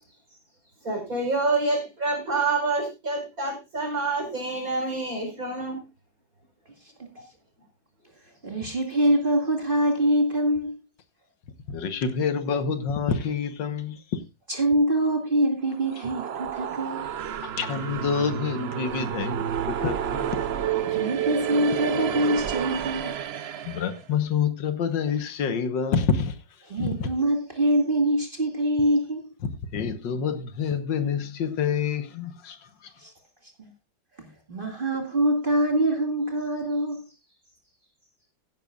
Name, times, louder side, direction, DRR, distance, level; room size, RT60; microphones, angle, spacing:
voice 1, 0.8-5.8, right 3 dB, 45° right, 5.1 m, -27 dB
voice 2, 8.4-10.8 14.5-17.0 20.8-23.1 26.7-29.3 33.0-33.1 34.2-37.0, right 1 dB, 30° right, 2.2 m, -24 dB
voice 3, 11.7-14.2 17.6-20.4 23.7-26.3 26.8-27.1 29.7-32.6, left 6 dB, 75° left, 1.8 m, -27 dB
sound 1, 15.7-24.0, right 9 dB, 85° right, 0.5 m, -30 dB
16.0 x 10.5 x 2.4 m
omnidirectional pair, 2.0 m